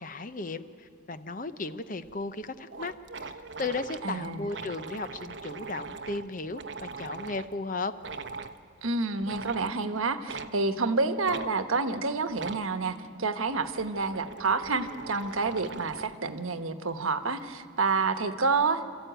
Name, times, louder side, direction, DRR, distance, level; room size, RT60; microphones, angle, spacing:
voice 1, 0.0-2.9 3.2-7.9, left 3 dB, 40° left, 12 dB, 0.7 m, -35 dB
sound 1, 2.0-2.1 2.4-2.5 2.7-7.5 8.0-8.6 9.2-9.7 10.3-10.5 11.2-11.5 12.3-12.7 13.4-16.2, right 4 dB, 60° right, 0.9 m, -41 dB
voice 2, 4.0-4.5 8.8-18.9, right 4 dB, 90° right, 9 dB, 1.1 m, -29 dB
28.0 x 14.0 x 9.1 m, 2.3 s
head